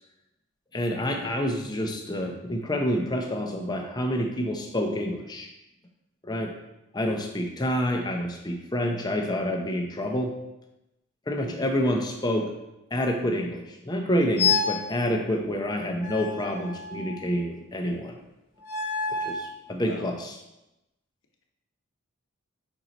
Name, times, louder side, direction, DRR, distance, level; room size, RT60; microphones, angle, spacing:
voice 1, 0.7-5.5 6.2-6.5 6.9-10.4 11.3-12.5 12.9-18.2 19.1-20.3, equal, 20° left, 3 dB, 0.6 m, -28 dB
voice 2, 11.3-11.8 19.8-20.2, left 2 dB, 65° left, 2 dB, 0.9 m, -42 dB
sound 1, 14.4-14.9 16.0-17.3 18.6-19.5, left 5 dB, 40° left, 1.1 m, -28 dB
5.4 x 4.4 x 4.0 m, 0.93 s
head